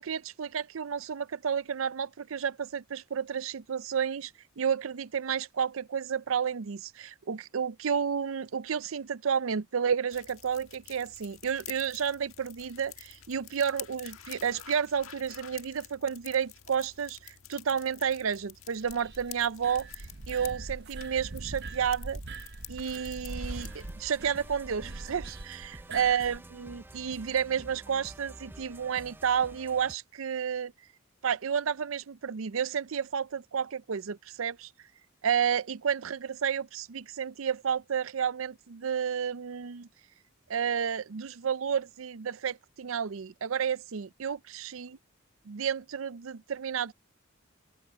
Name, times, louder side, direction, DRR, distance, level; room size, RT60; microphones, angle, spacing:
voice 1, 0.0-19.9 20.3-22.2 22.7-30.7 31.2-34.7 35.2-39.9 40.5-45.0 45.5-46.9, right 7 dB, 70° right, 0.5 m, -31 dB
sound 1, 10.1-23.9, left 12 dB, 80° left, 1.6 m, -49 dB
sound 2, 18.8-26.4, right 2 dB, 55° right, 1.0 m, -42 dB
sound 3, 23.3-30.0, right 1 dB, 10° right, 0.4 m, -50 dB
open air
head